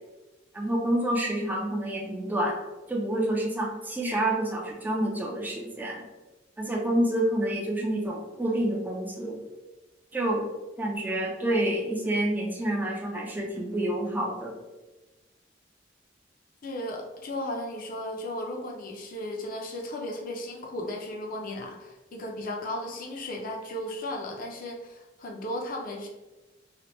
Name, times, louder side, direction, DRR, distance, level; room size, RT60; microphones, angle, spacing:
voice 1, 0.5-2.6 2.9-6.0 6.6-9.4 10.1-10.5 10.8-14.6, right 1 dB, 10° right, -1 dB, 0.3 m, -28 dB
voice 2, 16.6-26.1, left 1 dB, 50° left, 1 dB, 0.5 m, -35 dB
2.9 x 2.1 x 3.0 m, 1.1 s
head